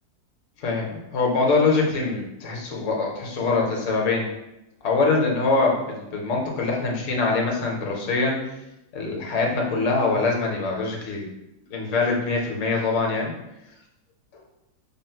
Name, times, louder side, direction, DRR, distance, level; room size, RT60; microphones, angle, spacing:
voice 1, 0.6-4.3 4.8-8.4 8.9-11.3 11.7-13.3, left 3 dB, 55° left, 0 dB, 1.0 m, -23 dB
3.8 x 2.0 x 4.3 m, 0.91 s
omnidirectional pair, 1.8 m